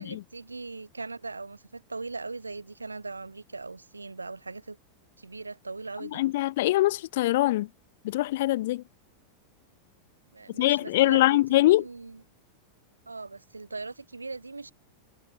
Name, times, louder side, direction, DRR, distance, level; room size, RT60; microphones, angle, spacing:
voice 1, 0.0-4.8 5.2-6.2 10.3-11.4 11.6-12.2 13.1-14.7, right 3 dB, 80° right, 3.8 m, -39 dB
voice 2, 6.1-7.7 8.0-8.8 10.6-11.8, left 16 dB, 55° left, 0.3 m, -23 dB
figure-of-eight pair, 90°, 0 cm